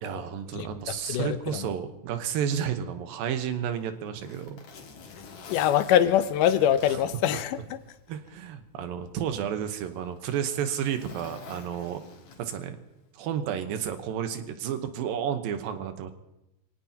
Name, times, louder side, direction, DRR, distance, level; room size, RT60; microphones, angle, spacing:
voice 1, 0.0-4.6 8.1-12.0 12.4-12.8 13.1-16.1, right 8 dB, 80° right, 2.8 m, -31 dB
voice 2, 0.5-1.7 5.5-7.6, left 10 dB, 75° left, 2.1 m, -24 dB
Zipper (clothing), 3.5-8.0 8.4-8.5 9.3-12.7 13.9-14.1, left 5 dB, 60° left, 2.7 m, -48 dB
26.0 x 17.5 x 2.9 m
omnidirectional pair, 4.1 m